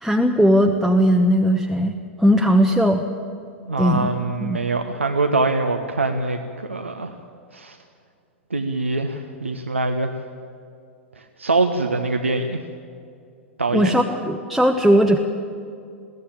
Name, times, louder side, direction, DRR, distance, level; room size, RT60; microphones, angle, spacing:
voice 1, 0.0-1.9 2.2-3.0 3.8-4.1 4.4-4.6 13.7-15.2, equal, ahead, 4 dB, 1.1 m, -18 dB
voice 2, 3.7-7.1 7.5-7.8 8.5-10.1 11.2-12.6 13.6-14.0, right 3 dB, 85° right, 5 dB, 1.1 m, -23 dB
22.0 x 15.5 x 8.9 m, 2.4 s
figure-of-eight pair, 100°, 7 cm